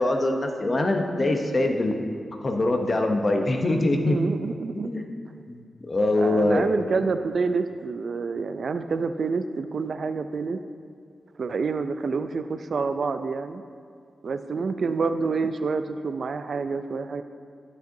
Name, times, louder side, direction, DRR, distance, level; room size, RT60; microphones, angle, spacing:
voice 1, 0.0-2.0 2.4-4.2 4.7-5.0 5.5-6.7, left 2 dB, 30° left, 3 dB, 0.7 m, -23 dB
voice 2, 4.1-4.9 6.2-10.6 11.4-13.6 14.2-17.2, right 4 dB, 55° right, 10 dB, 0.3 m, -28 dB
11.5 x 6.4 x 2.7 m, 2.2 s
wide cardioid pair, 135°, 0 cm